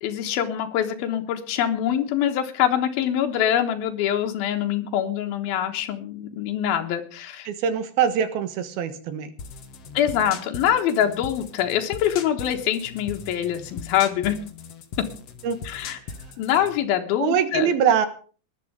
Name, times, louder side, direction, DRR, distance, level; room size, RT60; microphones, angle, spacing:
voice 1, 0.0-7.5 9.9-14.4 15.0-15.1 15.6-16.0 16.4-17.7, left 10 dB, 85° left, 4 dB, 3.2 m, -24 dB
voice 2, 7.5-9.3 15.4-15.6 17.2-18.1, right 8 dB, 85° right, 11 dB, 3.4 m, -23 dB
sound 1, 9.4-16.8, left 5 dB, 60° left, 1.8 m, -39 dB
19.0 x 11.5 x 5.1 m, 0.40 s
omnidirectional pair, 4.2 m